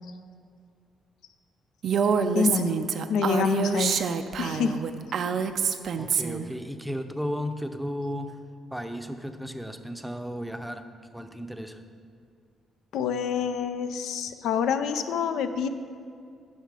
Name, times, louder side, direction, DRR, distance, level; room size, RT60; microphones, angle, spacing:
Female speech woman speaking, 1.8-6.5, right 6 dB, 60° right, 0.4 m, -26 dB
voice 1, 2.0-2.8 3.1-4.0 4.4-4.8 12.9-15.7, left 6 dB, 80° left, 10 dB, 0.5 m, -27 dB
voice 2, 6.0-8.4 8.7-10.8 11.1-11.8, equal, ahead, 7 dB, 0.6 m, -34 dB
10.5 x 5.6 x 4.8 m, 2.3 s
cardioid pair, 90°, 0 cm